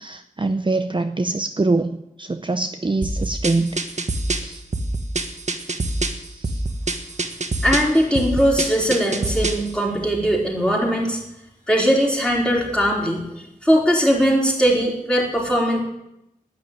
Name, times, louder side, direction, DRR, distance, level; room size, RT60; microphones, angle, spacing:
voice 1, 0.0-3.8 4.3-4.6 5.8-6.7, right 3 dB, 35° right, 8 dB, 0.7 m, -24 dB
sound 1, 3.0-9.7, right 2 dB, 55° right, 1.5 m, -26 dB
voice 2, 7.6-11.2 11.7-13.3 13.6-15.8, equal, 5° left, -2 dB, 4.5 m, -20 dB
11.5 x 9.5 x 9.4 m, 0.85 s
wide cardioid pair, 70°, 15 cm